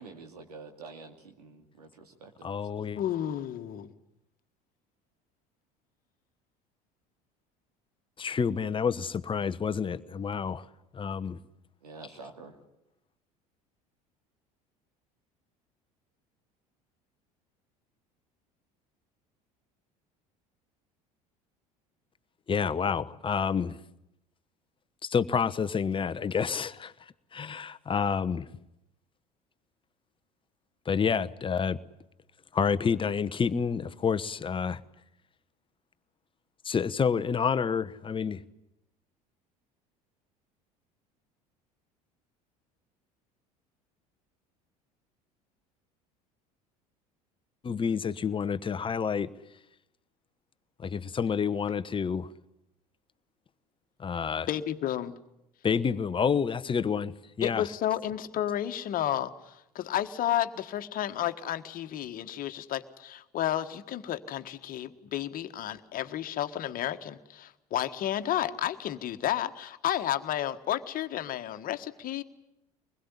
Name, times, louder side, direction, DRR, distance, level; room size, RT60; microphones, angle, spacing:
voice 1, 0.0-2.7 11.8-12.6, right 4 dB, 80° right, 2.6 m, -48 dB
voice 2, 2.4-3.0 8.2-10.7 10.9-11.4 22.5-23.8 25.0-26.9 27.3-28.5 30.9-31.8 32.5-34.8 36.6-38.4 47.6-49.3 50.8-52.3 54.0-54.5 55.6-57.7, left 6 dB, 25° left, 1.1 m, -29 dB
voice 3, 2.9-3.9 54.5-55.1 57.4-72.2, left 11 dB, 45° left, 1.6 m, -32 dB
24.5 x 21.0 x 10.0 m
figure-of-eight pair, 65°, 20 cm